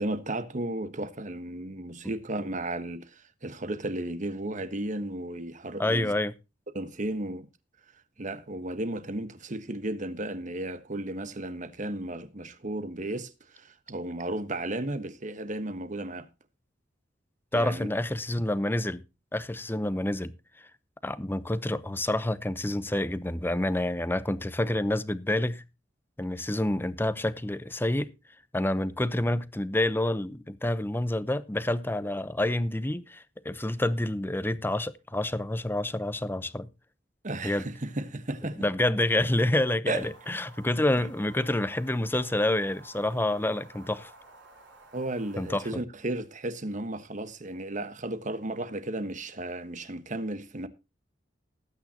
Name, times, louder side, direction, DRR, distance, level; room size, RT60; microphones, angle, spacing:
voice 1, 0.0-6.1 6.7-7.5 8.2-16.3 17.5-17.9 37.2-38.6 39.9-40.1 44.9-50.7, right 1 dB, 45° right, 1.3 m, -34 dB
voice 2, 5.8-6.3 17.5-19.0 19.3-20.3 21.0-25.6 26.2-28.1 28.5-36.7 37.4-37.7 38.6-44.1 45.4-45.7, left 1 dB, 10° left, 0.7 m, -28 dB
sound 1, 40.0-45.7, right 3 dB, 80° right, 6.0 m, -53 dB
19.0 x 8.8 x 2.9 m
head